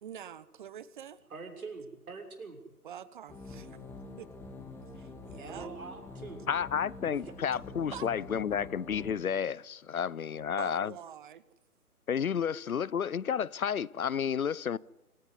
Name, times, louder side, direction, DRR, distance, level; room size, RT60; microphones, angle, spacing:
voice 1, 0.0-1.2 2.8-3.6 4.2-4.3 4.9-5.7 7.9-8.1 10.6-11.4, right 9 dB, 30° right, 1.2 m, -45 dB
voice 2, 1.3-2.6 5.3-6.6 7.2-7.3, right 4 dB, 65° right, 6.7 m, -44 dB
sound 1, 3.3-9.1, left 3 dB, 5° left, 1.8 m, -46 dB
voice 3, 6.5-10.9 12.1-14.8, left 7 dB, 65° left, 0.9 m, -31 dB
26.0 x 16.0 x 9.9 m
figure-of-eight pair, 140°, 45 cm